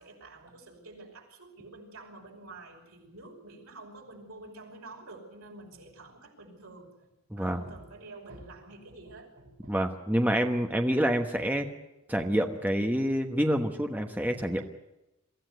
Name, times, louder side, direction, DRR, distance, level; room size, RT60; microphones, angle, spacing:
voice 1, 0.0-6.9 7.3-9.7, right 2 dB, 90° right, 1 dB, 5.6 m, -48 dB
voice 2, 7.3-7.6 9.7-11.7 12.1-14.6, equal, 10° right, 4 dB, 1.1 m, -27 dB
23.5 x 14.5 x 9.4 m, 0.97 s
head